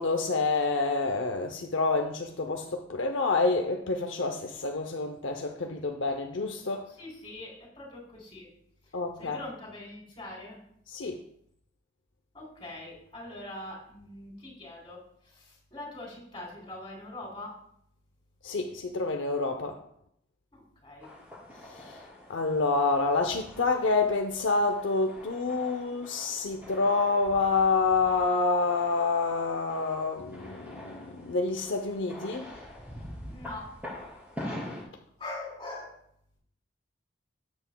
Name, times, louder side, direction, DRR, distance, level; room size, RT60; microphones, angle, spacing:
voice 1, 0.0-6.8 8.9-9.4 10.9-11.2 18.4-19.8 21.8-22.0 22.3-32.5, left 3 dB, 70° left, 0.7 m, -28 dB
voice 2, 6.9-8.5 8.8-10.6 12.3-17.5 20.5-21.1 33.3-33.7 35.2-36.0, left 2 dB, 25° left, 3.5 m, -43 dB
sound 1, 21.0-34.8, left 1 dB, 10° right, 3.1 m, -45 dB
12.5 x 7.9 x 2.3 m
head